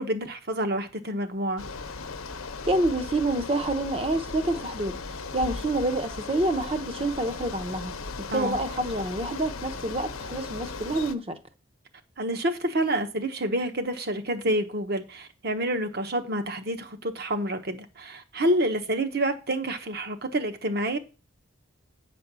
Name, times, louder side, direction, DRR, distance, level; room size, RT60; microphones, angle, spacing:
voice 1, 0.0-1.6 8.3-8.6 12.2-21.0, right 1 dB, 45° right, 1.0 m, -28 dB
Bicycle, 1.6-11.2, left 4 dB, 80° left, 0.8 m, -37 dB
voice 2, 2.7-5.0 5.3-7.9 8.2-11.4, right 1 dB, 25° right, 0.8 m, -27 dB
9.0 x 4.4 x 6.8 m
head